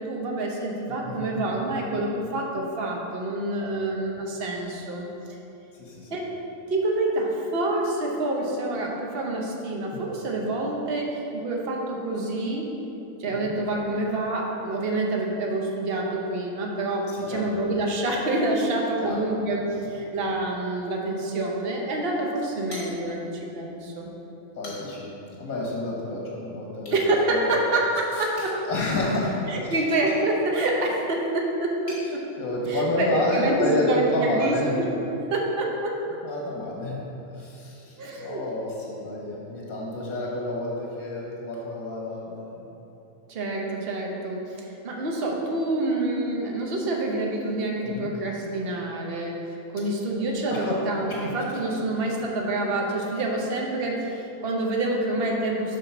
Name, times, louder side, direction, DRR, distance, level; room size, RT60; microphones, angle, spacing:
voice 1, 0.0-5.1 6.1-6.3 6.7-12.7 13.2-24.1 26.9-28.6 29.5-32.3 32.7-34.9 35.3-36.2 38.0-38.4 43.3-49.3 49.7-55.8, right 2 dB, 50° right, -1 dB, 1.0 m, -27 dB
voice 2, 1.0-1.4 3.6-3.7 5.8-6.2 13.3-13.5 17.1-17.5 19.0-19.2 24.6-25.1 25.3-27.0 27.3-27.6 28.2-28.3 28.6-29.4 29.7-29.8 32.4-34.8 36.2-37.0 37.3-42.7 47.8-48.1 50.5-50.8 51.1-51.2, left 1 dB, 80° left, -3 dB, 1.5 m, -29 dB
sound 1, 22.7-23.4 23.8-23.9 24.4-25.1 26.8-27.0 28.3-32.1, left 1 dB, 60° left, 2.2 m, -46 dB
8.4 x 3.6 x 5.9 m, 2.9 s
omnidirectional pair, 1.5 m